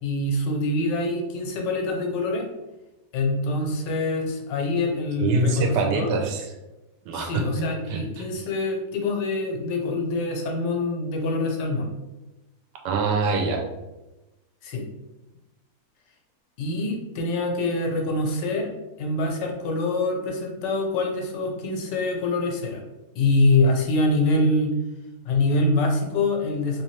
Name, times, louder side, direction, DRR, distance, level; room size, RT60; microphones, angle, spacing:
voice 1, 0.0-2.5 3.1-6.1 7.1-11.9 14.6-14.8 16.6-18.7 19.0-22.8 23.1-24.7 25.2-26.8, left 2 dB, 90° left, 2 dB, 1.4 m, -25 dB
voice 2, 5.2-6.4 7.1-7.4 7.9-8.3 12.8-13.6, right 4 dB, 85° right, 2 dB, 1.3 m, -24 dB
3.2 x 3.1 x 3.1 m, 1.1 s
omnidirectional pair, 1.8 m